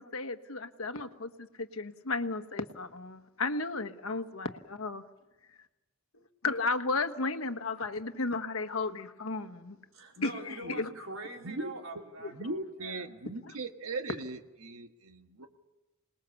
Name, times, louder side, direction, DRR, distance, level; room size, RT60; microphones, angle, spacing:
voice 1, 0.0-5.0 6.4-9.8 10.2-10.3 10.8-10.9 12.2-12.3 13.4-13.5, left 3 dB, 75° left, 8 dB, 1.4 m, -34 dB
voice 2, 9.9-13.1, right 1 dB, 70° right, 1 dB, 4.1 m, -44 dB
voice 3, 12.3-15.5, right 2 dB, 90° right, 6 dB, 1.6 m, -39 dB
27.0 x 20.0 x 7.1 m, 1.0 s
head